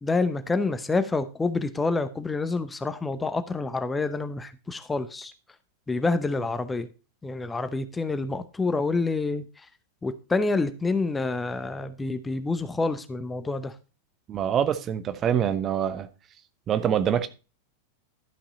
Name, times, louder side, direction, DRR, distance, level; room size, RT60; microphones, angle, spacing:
voice 1, 0.0-5.3 5.9-6.9 7.2-9.4 10.0-13.7, left 3 dB, 10° left, 0.8 m, -27 dB
voice 2, 14.3-16.1 16.7-17.3, right 9 dB, 30° right, 0.9 m, -25 dB
12.5 x 5.9 x 4.2 m
figure-of-eight pair, 90°, 0 cm